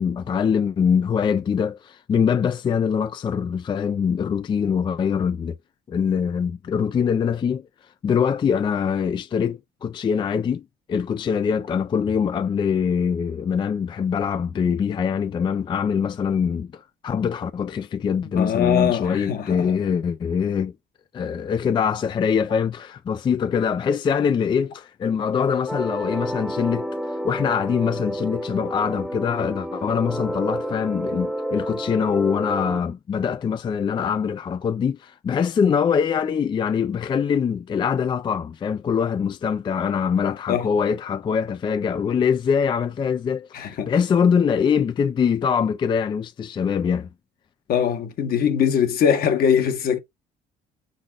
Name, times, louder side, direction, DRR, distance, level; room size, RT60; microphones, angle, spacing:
voice 1, 0.0-5.6 5.9-7.7 8.0-20.7 21.1-47.1, left 7 dB, 30° left, 0.3 m, -23 dB
voice 2, 18.3-19.8 40.5-40.7 43.5-43.9 47.7-50.0, left 8 dB, 60° left, 1.1 m, -22 dB
sound 1, 25.7-32.8, equal, ahead, 0.9 m, -30 dB
4.8 x 4.0 x 2.4 m
cardioid pair, 110°, 17 cm